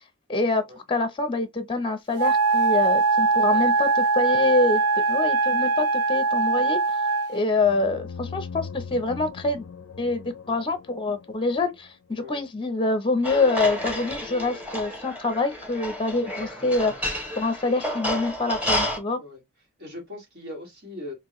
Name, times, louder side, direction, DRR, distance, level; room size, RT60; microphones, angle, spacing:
voice 1, 0.3-0.6 0.9-4.8 5.1-6.8 7.3-9.6 10.0-16.9 17.4-19.2, left 3 dB, 25° left, 0.7 m, -25 dB
Wind instrument woodwind instrument, 2.2-7.4, right 4 dB, 85° right, 0.5 m, -22 dB
voice 2, 3.3-3.7 12.1-12.4 19.2-19.4 19.8-21.1, left 1 dB, 50° right, 2.6 m, -40 dB
sound 1, 7.6-12.1, left 5 dB, 65° left, 0.5 m, -40 dB
sound 2, 13.2-19.0, equal, 5° right, 1.8 m, -30 dB
4.4 x 3.1 x 3.0 m
head